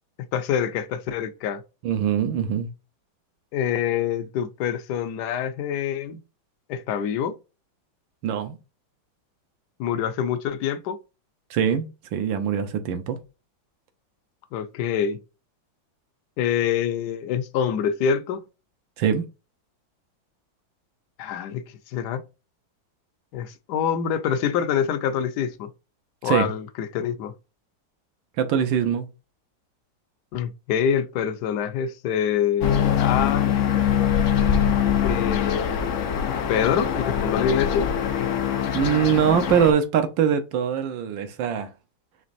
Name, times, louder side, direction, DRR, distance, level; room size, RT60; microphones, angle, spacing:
voice 1, 0.3-1.6 3.5-6.2 6.7-7.3 9.8-11.0 14.5-15.2 16.4-18.4 21.2-22.2 23.3-25.7 26.2-27.3 30.3-33.5 35.0-36.1 36.5-37.9, left 8 dB, 70° left, 1.1 m, -26 dB
voice 2, 1.8-2.7 8.2-8.6 11.5-11.9 12.1-13.2 19.0-19.2 26.2-26.5 28.4-29.1 38.7-41.7, right 8 dB, 75° right, 1.5 m, -22 dB
sound 1, 32.6-39.7, left 9 dB, 85° left, 0.6 m, -23 dB
5.1 x 3.3 x 2.6 m
omnidirectional pair, 2.2 m